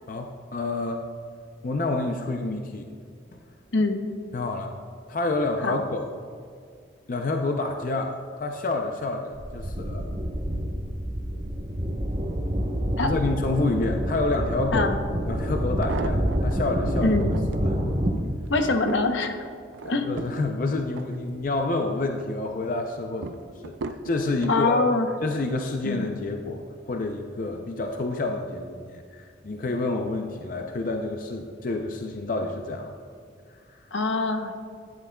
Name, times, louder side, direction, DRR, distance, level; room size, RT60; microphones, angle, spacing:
voice 1, 0.1-1.0 1.6-2.9 3.3-3.4 4.3-4.7 5.1-6.1 7.1-10.1 13.0-14.9 15.3-17.1 17.5-17.8 19.8-24.8 25.2-32.9 33.7-33.8, left 2 dB, 45° left, 4 dB, 0.5 m, -28 dB
sound 1, 9.3-18.1, equal, 35° right, 0.8 m, -27 dB
sound 2, 15.6-16.6 17.1-17.7 18.3-21.7 22.1-22.6 23.2-24.6 25.3-25.7 26.0-26.1, right 4 dB, 70° right, 0.4 m, -37 dB
voice 2, 18.5-19.4 19.8-20.1 24.5-25.1 25.8-26.1 33.9-34.6, left 3 dB, 75° left, 6 dB, 0.8 m, -23 dB
12.0 x 10.0 x 2.3 m, 2.2 s
head